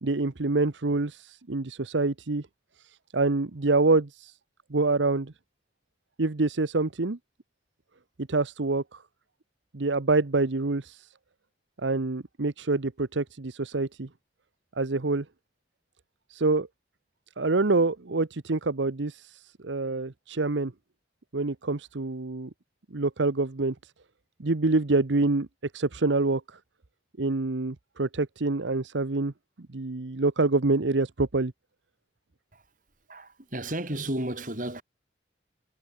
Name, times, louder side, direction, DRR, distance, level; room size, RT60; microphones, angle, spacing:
voice 1, 0.0-2.5 3.1-4.3 4.7-5.3 6.2-7.2 8.3-9.0 9.7-11.1 11.8-14.1 14.8-15.2 16.3-16.7 17.4-20.7 21.3-22.5 22.9-23.7 24.4-25.5 25.7-26.4 27.2-29.3 29.7-31.5, right 3 dB, 90° right, 1.0 m, -26 dB
voice 2, 33.1-34.8, right 1 dB, 45° right, 5.2 m, -33 dB
head